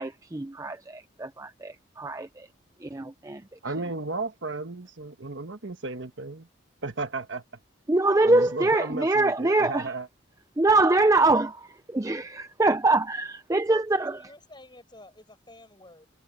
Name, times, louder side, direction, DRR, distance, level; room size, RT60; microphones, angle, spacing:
voice 1, 0.0-2.5 2.8-3.4 7.9-9.9 10.6-14.2, right 2 dB, 15° right, 0.5 m, -24 dB
voice 2, 3.6-6.5 6.8-7.4 8.2-10.1, right 3 dB, 65° right, 1.4 m, -34 dB
voice 3, 13.7-16.1, left 1 dB, 20° left, 7.0 m, -50 dB
head